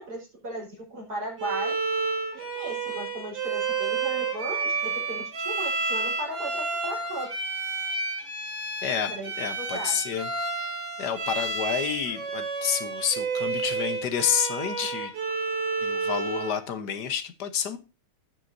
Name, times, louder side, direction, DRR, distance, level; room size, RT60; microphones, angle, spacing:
voice 1, 0.0-1.8 2.3-7.3 9.1-9.3 9.6-10.1, right 2 dB, 45° right, -2 dB, 5.3 m, -36 dB
Bowed string instrument, 1.4-16.6, right 4 dB, 65° right, 3.7 m, -30 dB
voice 2, 8.8-10.3 11.0-15.1 15.8-17.8, left 8 dB, 60° left, 11 dB, 1.5 m, -29 dB
17.0 x 6.3 x 2.7 m, 0.30 s
omnidirectional pair, 2.3 m